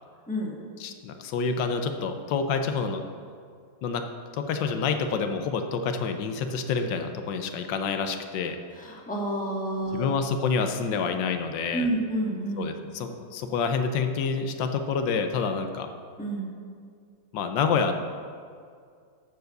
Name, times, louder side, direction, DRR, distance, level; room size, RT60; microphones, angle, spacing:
voice 1, 0.3-0.6 8.7-10.1 11.7-12.7 16.2-16.5, right 1 dB, 5° left, -3 dB, 1.5 m, -29 dB
voice 2, 0.8-3.0 3.8-4.0 4.4-8.6 9.9-11.9 12.6-15.9 17.3-17.9, left 5 dB, 85° left, 6 dB, 1.4 m, -28 dB
12.5 x 4.7 x 6.6 m, 2.2 s
omnidirectional pair, 1.9 m